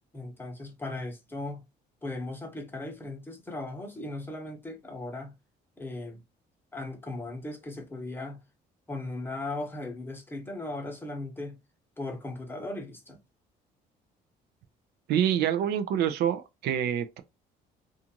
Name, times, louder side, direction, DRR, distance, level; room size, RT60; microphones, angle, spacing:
voice 1, 0.1-1.6 2.0-5.3 5.8-6.2 6.7-8.4 8.9-11.6 12.0-13.2, left 2 dB, 10° left, 0.9 m, -37 dB
voice 2, 15.1-17.2, right 9 dB, 70° right, 0.4 m, -26 dB
2.5 x 2.4 x 2.8 m
cardioid pair, 110°, 17 cm